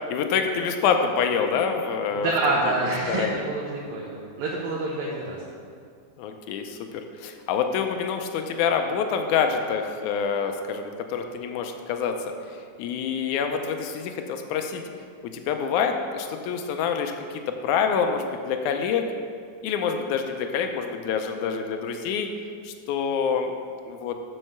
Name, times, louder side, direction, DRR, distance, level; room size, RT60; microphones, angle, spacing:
voice 1, 0.1-2.3 2.8-3.4 6.2-12.2 12.8-14.8 15.3-17.1 17.6-19.1 19.6-22.3 22.6-23.5 23.9-24.2, left 6 dB, 85° left, 5 dB, 1.8 m, -26 dB
voice 2, 2.1-5.4, right 2 dB, 90° right, -4 dB, 2.9 m, -27 dB
7.6 x 6.5 x 6.6 m, 2.2 s
omnidirectional pair, 4.0 m